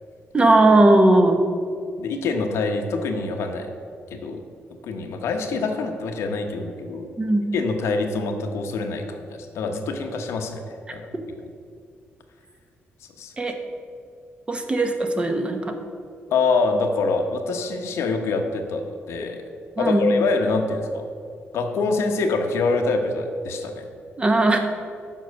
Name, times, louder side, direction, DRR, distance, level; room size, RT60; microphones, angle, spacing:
voice 1, 0.3-1.4 7.2-7.5 10.9-11.0 13.4-13.5 14.5-15.7 19.8-20.1 24.2-24.6, right 2 dB, 25° right, 5 dB, 1.0 m, -18 dB
voice 2, 2.0-3.7 4.1-4.4 4.8-7.1 7.5-11.1 13.2-13.3 16.3-19.4 19.8-21.1 21.5-23.9, left 3 dB, 85° left, 4 dB, 0.9 m, -25 dB
7.2 x 5.6 x 6.4 m, 2.3 s
cardioid pair, 105°, 4 cm